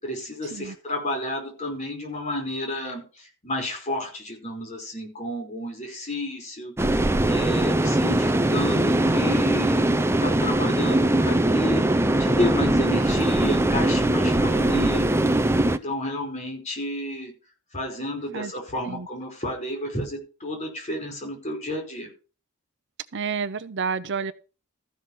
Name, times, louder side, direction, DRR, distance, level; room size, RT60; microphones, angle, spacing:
voice 1, 0.0-11.9 12.2-15.1 15.6-17.3 17.7-22.1, left 1 dB, 35° left, 5.0 m, -31 dB
sound 1, 6.8-15.8, right 1 dB, 10° right, 0.6 m, -21 dB
voice 2, 23.1-24.3, right 5 dB, 60° right, 0.7 m, -29 dB
14.5 x 5.9 x 5.8 m
head